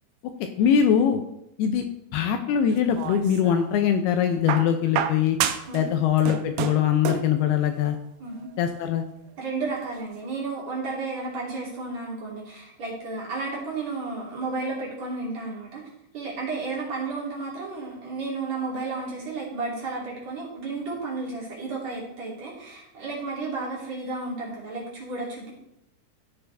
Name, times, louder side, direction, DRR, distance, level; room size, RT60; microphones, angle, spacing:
voice 1, 0.4-1.2 1.6-1.9 2.1-5.4 5.7-8.0 8.6-9.0, left 8 dB, 80° left, 6 dB, 2.5 m, -22 dB
sound 1, 2.7-3.7 4.5-5.8 6.1-7.4 8.4-8.5, right 9 dB, 80° right, 2.6 m, -29 dB
voice 2, 9.4-15.8 16.1-25.5, right 3 dB, 45° right, -5 dB, 3.8 m, -32 dB
16.0 x 6.7 x 3.4 m, 0.83 s
omnidirectional pair, 4.9 m